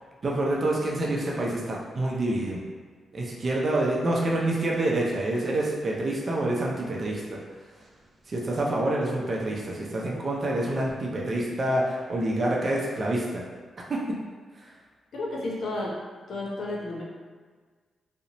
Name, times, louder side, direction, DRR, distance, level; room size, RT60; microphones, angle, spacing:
voice 1, 0.2-2.6 3.1-7.4 8.3-13.2 13.9-14.2, right 1 dB, 50° right, -3 dB, 0.5 m, -27 dB
voice 2, 15.1-15.9 16.3-17.0, left 2 dB, 70° left, -3 dB, 0.6 m, -32 dB
2.5 x 2.1 x 2.9 m, 1.5 s
supercardioid pair, 55°, 0 cm